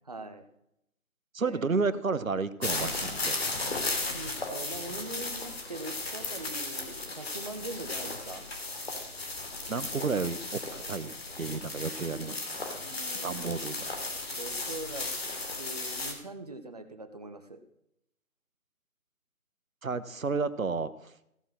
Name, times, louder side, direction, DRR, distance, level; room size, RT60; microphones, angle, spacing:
voice 1, 0.1-0.4 1.4-1.6 4.0-8.4 12.8-13.8 14.3-15.1 15.6-17.6, right 2 dB, 25° right, 9 dB, 1.1 m, -42 dB
voice 2, 1.3-3.4 9.7-12.4 13.2-13.9 19.8-21.1, right 4 dB, 65° right, 15 dB, 1.2 m, -32 dB
sound 1, 2.6-16.1, left 2 dB, 45° left, 3.0 m, -35 dB
16.0 x 8.6 x 6.3 m, 0.78 s
figure-of-eight pair, 160°, 43 cm